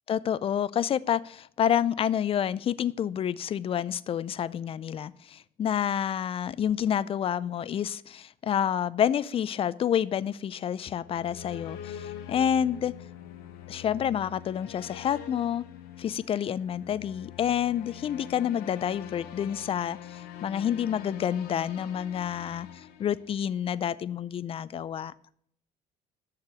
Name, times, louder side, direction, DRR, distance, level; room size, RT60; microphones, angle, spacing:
voice 1, 0.1-12.9 13.7-15.6 16.0-22.7 23.0-25.1, left 9 dB, 35° left, 18 dB, 0.4 m, -28 dB
sound 1, 10.9-23.7, left 10 dB, 80° left, 0.9 m, -44 dB
6.7 x 6.6 x 5.8 m, 0.66 s
cardioid pair, 100°, 16 cm